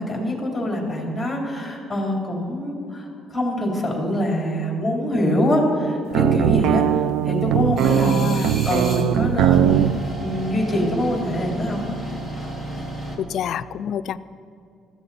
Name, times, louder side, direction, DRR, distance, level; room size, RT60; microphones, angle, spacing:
voice 1, 0.0-12.0, left 1 dB, 10° left, -1 dB, 3.6 m, -24 dB
sound 1, 6.1-10.0, right 10 dB, 75° right, 0.4 m, -19 dB
sound 2, 7.8-9.0 9.4-13.2, right 1 dB, 20° right, 2.4 m, -33 dB
voice 2, 7.9-8.5 13.2-14.2, left 9 dB, 55° left, 12 dB, 0.4 m, -28 dB
19.5 x 14.5 x 4.2 m, 2.5 s
cardioid pair, 140°, 0 cm